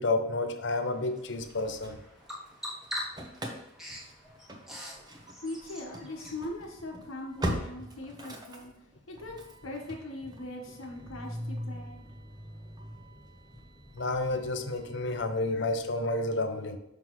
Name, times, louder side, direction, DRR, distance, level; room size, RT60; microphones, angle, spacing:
voice 1, 0.0-2.0 13.9-16.8, left 2 dB, 60° left, 8 dB, 0.6 m, -30 dB
Bird vocalization bird call bird song, 0.8-6.4, left 1 dB, ahead, 1.1 m, -43 dB
Engine starting / Slam, 1.2-2.5 2.8-15.9, equal, 20° right, 0.7 m, -42 dB
voice 2, 5.4-8.7 9.1-9.4 9.6-12.0, left 2 dB, 85° left, 1 dB, 1.3 m, -40 dB
6.2 x 5.5 x 3.1 m, 0.90 s
head